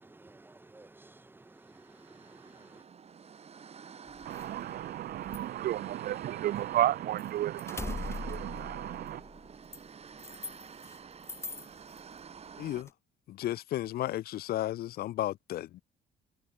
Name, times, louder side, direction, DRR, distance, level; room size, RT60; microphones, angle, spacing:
voice 1, 0.0-2.8, right 2 dB, 10° right, 1.3 m, -55 dB
sound 1, 1.6-12.8, right 6 dB, 40° right, 6.5 m, -50 dB
sound 2, 4.1-6.9 7.2-11.0 11.2-12.0 12.5-12.9, left 3 dB, 15° left, 1.0 m, -43 dB
voice 2, 4.2-9.2, right 13 dB, 65° right, 1.1 m, -33 dB
voice 3, 12.6-12.9 13.3-15.8, left 14 dB, 65° left, 0.9 m, -33 dB
cardioid pair, 110°, 17 cm